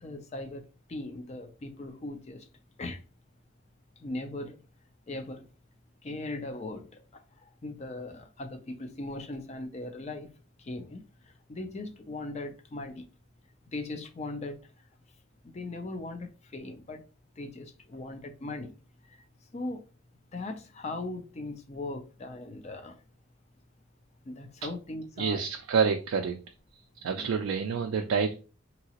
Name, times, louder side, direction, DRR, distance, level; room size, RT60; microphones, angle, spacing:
voice 1, 0.0-0.6 0.9-2.5 2.8-3.0 4.0-4.6 5.1-5.4 6.0-7.0 7.6-10.3 10.6-11.0 11.5-13.1 13.7-14.6 15.4-17.0 17.4-18.7 19.5-19.8 20.3-23.0 24.3-25.5 27.1-27.4, left 2 dB, 30° left, 0.4 m, -39 dB
voice 2, 25.2-26.4 27.0-28.3, right 6 dB, 80° right, 0.4 m, -27 dB
2.9 x 2.8 x 2.8 m
head